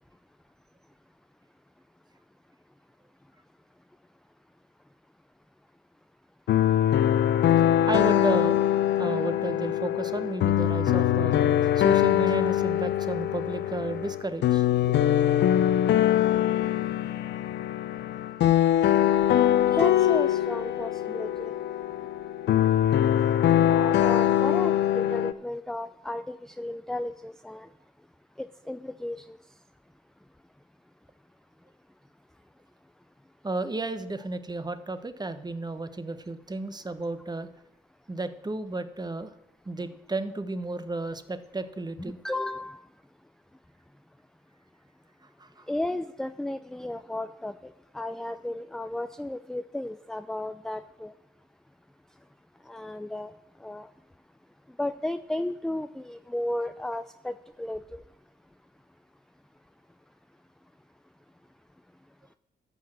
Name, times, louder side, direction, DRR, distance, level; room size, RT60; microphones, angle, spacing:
sound 1, 6.5-25.3, left 11 dB, 65° left, 0.6 m, -23 dB
voice 1, 7.9-8.6 9.0-15.0 19.7-19.8 33.4-37.5 38.1-39.3 39.7-42.2 45.4-45.7, right 2 dB, 20° right, 11 dB, 1.0 m, -33 dB
voice 2, 19.8-21.5 23.7-27.7 28.4-29.4 42.0-42.8 45.7-51.1 52.7-53.3 53.6-53.9 54.8-58.0, left 1 dB, 5° left, 10 dB, 0.4 m, -34 dB
13.5 x 5.7 x 6.2 m, 0.87 s
hypercardioid pair, 40°, 20 cm